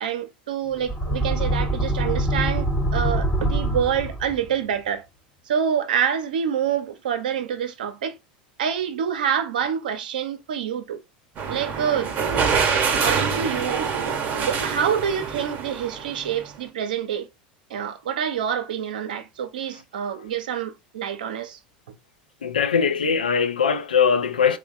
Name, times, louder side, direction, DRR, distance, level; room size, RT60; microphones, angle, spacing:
voice 1, 0.0-5.1 5.5-8.1 8.6-11.0 11.5-12.1 12.9-13.9 14.4-17.3 17.7-21.6, right 8 dB, 80° right, 0.5 m, -27 dB
sound 1, 0.8-4.6, right 1 dB, 15° left, 0.6 m, -24 dB
sound 2, 11.4-16.6, right 6 dB, 40° right, 0.7 m, -25 dB
voice 2, 22.4-24.6, left 6 dB, 90° left, 0.4 m, -21 dB
3.0 x 2.1 x 2.4 m
hypercardioid pair, 85°, 5 cm